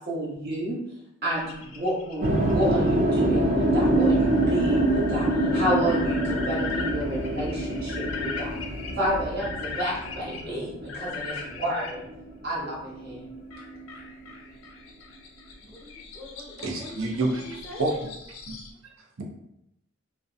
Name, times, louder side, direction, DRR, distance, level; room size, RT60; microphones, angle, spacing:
voice 1, 0.1-0.8 1.2-8.5 9.0-12.0 12.4-13.2, right 1 dB, 55° right, -6 dB, 1.0 m, -30 dB
sound 1, 1.3-11.9 13.5-18.7, left 4 dB, 90° left, 0.4 m, -40 dB
sound 2, 2.2-12.3 12.6-14.2, right 1 dB, 35° right, 0.3 m, -25 dB
voice 2, 15.6-17.9, left 2 dB, 10° left, -4 dB, 0.5 m, -43 dB
voice 3, 16.6-17.4 17.8-17.9 18.5-18.6 19.2-19.3, right 2 dB, 85° right, 1 dB, 0.5 m, -27 dB
2.6 x 2.1 x 2.4 m, 0.80 s
head